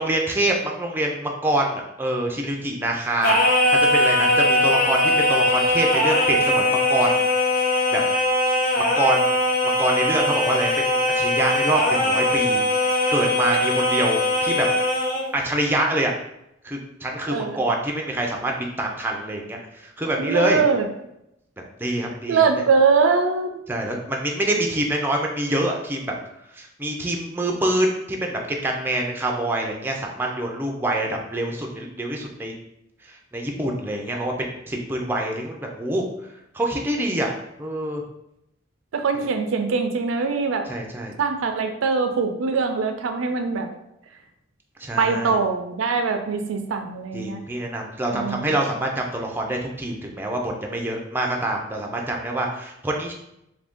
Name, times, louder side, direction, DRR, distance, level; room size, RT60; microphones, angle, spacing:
voice 1, 0.0-7.2 7.9-8.0 8.8-9.4 9.6-12.6 13.1-14.7 15.3-16.1 16.6-20.6 21.8-22.5 23.7-26.1 26.5-32.5 33.1-36.0 36.5-37.3 37.6-38.0 40.7-41.2 44.8-45.4 47.1-53.1, right 1 dB, 10° right, 0 dB, 0.4 m, -25 dB
Singing, 3.2-15.3, left 1 dB, 50° left, 0.5 m, -20 dB
voice 2, 20.2-20.9 22.3-23.5 38.9-40.7 41.2-43.7 45.0-47.4 48.1-48.5, right 5 dB, 90° right, 6 dB, 0.4 m, -22 dB
2.7 x 2.6 x 3.5 m, 0.82 s
head